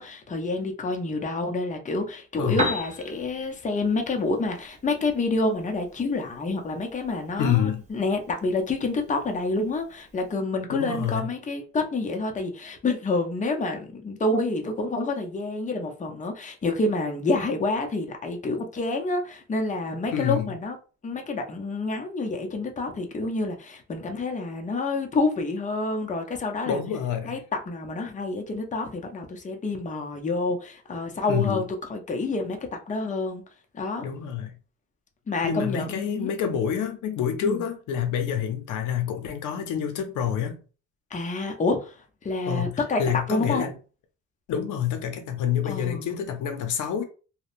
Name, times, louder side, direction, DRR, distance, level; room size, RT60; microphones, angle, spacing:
voice 1, 0.0-20.8 21.0-26.8 27.2-33.4 33.7-34.0 35.3-36.3 37.4-37.6 41.1-43.0 43.3-43.7 45.6-46.2, left 3 dB, 25° left, 0.6 m, -28 dB
Piano, 2.3-10.3, right 1 dB, 25° right, 0.6 m, -38 dB
voice 2, 2.4-2.7 7.4-7.8 10.7-11.3 20.1-20.5 26.7-27.4 31.3-31.6 34.0-34.6 35.4-40.6 42.5-43.7 44.5-47.0, left 8 dB, 80° left, 0.6 m, -27 dB
2.7 x 2.1 x 2.5 m
cardioid pair, 90°, 30 cm